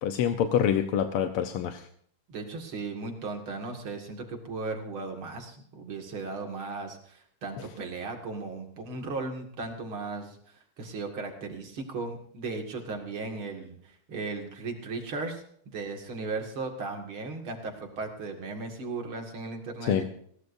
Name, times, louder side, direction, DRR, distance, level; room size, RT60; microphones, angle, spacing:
voice 1, 0.0-1.9 19.9-20.0, left 8 dB, 90° left, 7 dB, 1.8 m, -26 dB
voice 2, 2.3-20.0, right 3 dB, 75° right, 3 dB, 3.0 m, -36 dB
21.0 x 17.5 x 2.7 m, 0.63 s
omnidirectional pair, 2.3 m